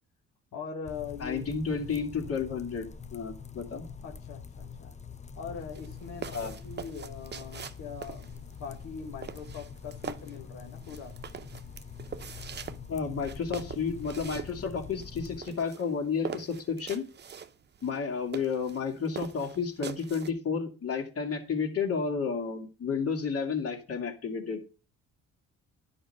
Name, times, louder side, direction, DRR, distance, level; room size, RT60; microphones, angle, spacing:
voice 1, 0.5-1.5 4.0-5.0 5.4-11.2, left 6 dB, 85° left, 2 dB, 1.5 m, -42 dB
sound 1, 0.8-15.4, left 6 dB, 25° left, 0.7 m, -45 dB
voice 2, 1.2-2.9 3.1-3.8 6.3-6.5 12.9-17.0 17.8-24.6, left 5 dB, 50° left, 4 dB, 2.4 m, -31 dB
sound 2, 5.6-20.3, right 7 dB, 35° right, 0.7 m, -43 dB
10.0 x 5.4 x 6.6 m, 0.34 s
cardioid pair, 90°, 30 cm